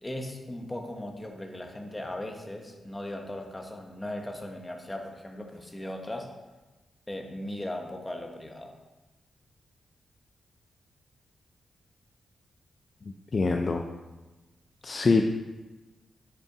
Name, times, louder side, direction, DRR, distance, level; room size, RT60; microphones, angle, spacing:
voice 1, 0.0-6.3 7.1-8.7, left 1 dB, 10° left, 3 dB, 0.9 m, -38 dB
voice 2, 13.3-13.8 14.8-15.2, left 4 dB, 30° left, 4 dB, 0.4 m, -24 dB
7.3 x 5.6 x 4.7 m, 1.2 s
wide cardioid pair, 165°, 0 cm